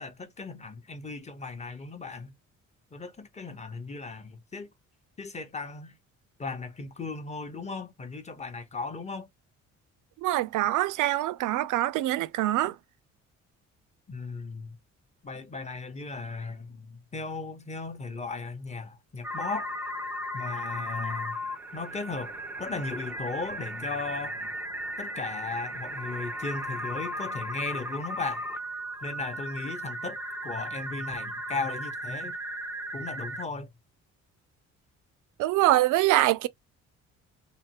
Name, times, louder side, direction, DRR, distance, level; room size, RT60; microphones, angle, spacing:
voice 1, 0.0-2.3 2.9-4.7 5.2-6.0 6.4-9.3 14.1-14.8 15.2-19.7 20.3-21.4 21.7-24.5 25.0-28.4 29.0-32.4 32.9-33.7, left 3 dB, 20° left, 0.8 m, -36 dB
voice 2, 10.2-12.8 35.4-36.5, right 15 dB, 85° right, 0.5 m, -24 dB
sound 1, 19.2-33.4, equal, 5° right, 0.5 m, -36 dB
3.3 x 2.1 x 2.9 m
cardioid pair, 90°, 30 cm